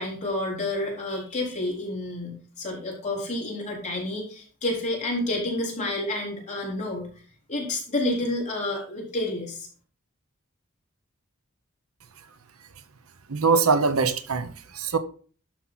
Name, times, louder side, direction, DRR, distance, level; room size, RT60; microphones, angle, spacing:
voice 1, 0.0-7.1 7.5-9.7, left 1 dB, 35° left, 4.1 m, -29 dB
voice 2, 13.3-15.0, right 4 dB, 70° right, 0.9 m, -23 dB
12.0 x 6.1 x 4.1 m
head